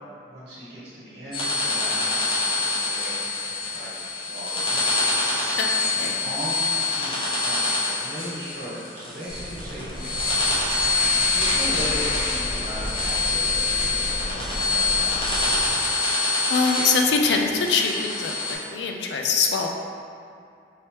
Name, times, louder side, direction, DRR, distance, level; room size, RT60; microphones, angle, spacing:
voice 1, 0.2-5.4 6.1-10.1 11.3-15.5, equal, 85° right, -10 dB, 1.4 m, -37 dB
sound 1, 1.3-18.5, left 3 dB, 30° left, 0.8 m, -25 dB
voice 2, 5.6-6.2 10.7-10.9 16.5-19.7, left 4 dB, 85° left, 2 dB, 0.4 m, -24 dB
sound 2, 9.3-15.7, equal, ahead, 1.0 m, -35 dB
4.7 x 3.1 x 2.9 m, 2.5 s
head